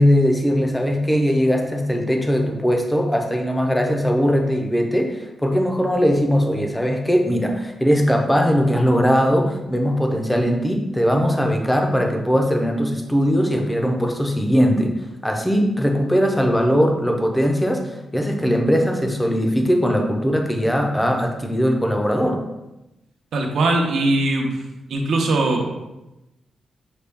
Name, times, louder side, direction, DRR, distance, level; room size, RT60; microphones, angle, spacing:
voice 1, 0.0-14.9 15.2-22.4, equal, 5° left, 2 dB, 0.5 m, -20 dB
voice 2, 23.3-24.6 24.9-25.8, right 2 dB, 75° right, 2 dB, 0.7 m, -20 dB
6.6 x 2.3 x 3.4 m, 0.96 s
wide cardioid pair, 155°, 0 cm